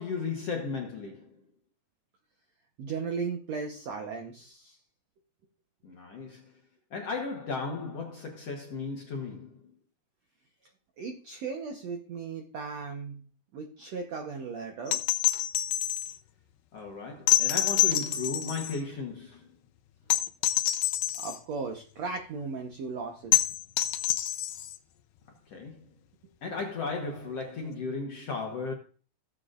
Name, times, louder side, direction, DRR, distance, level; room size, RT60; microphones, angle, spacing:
voice 1, 0.0-1.4 5.8-6.5 6.9-9.6 16.7-19.5 25.5-25.9 26.4-28.7, left 4 dB, 60° left, 1.7 m, -35 dB
voice 2, 2.8-4.8 11.0-13.2 13.5-15.0 15.3-15.4 21.1-23.3, right 5 dB, 65° right, 1.8 m, -36 dB
sound 1, 14.9-16.2 17.3-18.8 20.1-21.4 23.3-24.8 26.6-26.7, left 14 dB, 80° left, 2.4 m, -27 dB
16.5 x 7.8 x 2.5 m
omnidirectional pair, 4.2 m